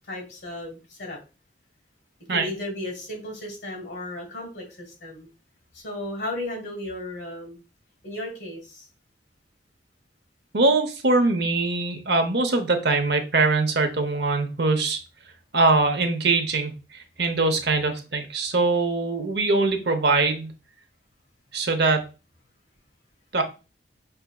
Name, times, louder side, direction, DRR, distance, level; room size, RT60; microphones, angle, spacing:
voice 1, 0.1-1.2 2.3-5.3 5.7-7.6 8.0-8.9, left 1 dB, 60° left, 2 dB, 1.6 m, -35 dB
voice 2, 10.5-15.0 15.5-16.7 17.2-20.5 21.5-22.0 23.3-23.4, right 3 dB, 65° right, 5 dB, 0.7 m, -22 dB
5.6 x 2.7 x 2.2 m, 0.31 s
head